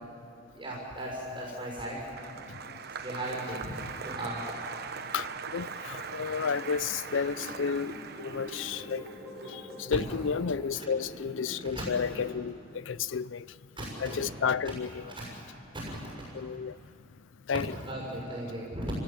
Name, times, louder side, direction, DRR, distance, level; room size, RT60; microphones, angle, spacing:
voice 1, 0.5-2.0 3.0-4.4 10.7-10.8 11.6-11.8 13.8-14.2 14.6-14.7 15.0-15.2 15.9-16.1 17.5-18.9, right 1 dB, 25° right, 6.4 m, -37 dB
Applause, 1.2-11.6 11.8-12.5, right 5 dB, 55° right, 1.1 m, -42 dB
voice 2, 5.1-9.0 9.5-13.4 14.0-15.0 16.3-16.8 17.5-17.7, left 6 dB, 85° left, 0.5 m, -32 dB
sound 1, 7.3-12.3, equal, ahead, 5.0 m, -44 dB
29.5 x 17.0 x 8.9 m
head